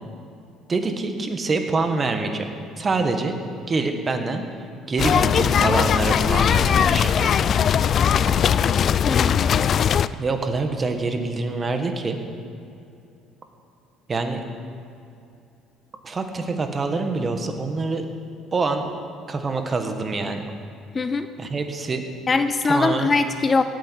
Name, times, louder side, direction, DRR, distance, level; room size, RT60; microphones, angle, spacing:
voice 1, 0.7-2.5 2.8-3.3 3.7-4.4 4.9-7.3 10.2-12.2 14.1-14.4 16.0-18.1 18.5-18.9 19.3-20.5 21.4-22.0 22.6-23.1, right 3 dB, 30° right, 6 dB, 1.6 m, -25 dB
sound 1, 5.0-10.1, left 8 dB, 50° left, 0.3 m, -19 dB
voice 2, 9.1-9.4 20.9-21.3 22.3-23.6, left 4 dB, 30° left, 10 dB, 0.7 m, -21 dB
17.0 x 9.4 x 4.7 m, 2.6 s
supercardioid pair, 75°, 0 cm